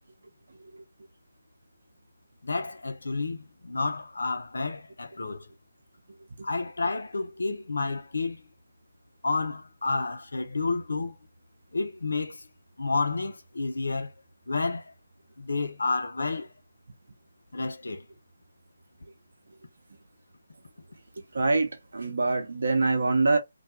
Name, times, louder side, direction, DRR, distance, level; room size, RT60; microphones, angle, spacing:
voice 1, 2.4-3.4 3.6-5.5 6.4-8.4 9.2-11.2 11.7-12.4 12.8-14.1 14.5-14.8 15.4-16.5 17.5-18.0, left 3 dB, 70° left, 0.6 m, -30 dB
voice 2, 21.3-23.4, right 3 dB, 60° right, 0.8 m, -25 dB
2.3 x 2.3 x 2.7 m
figure-of-eight pair, 150°, 0 cm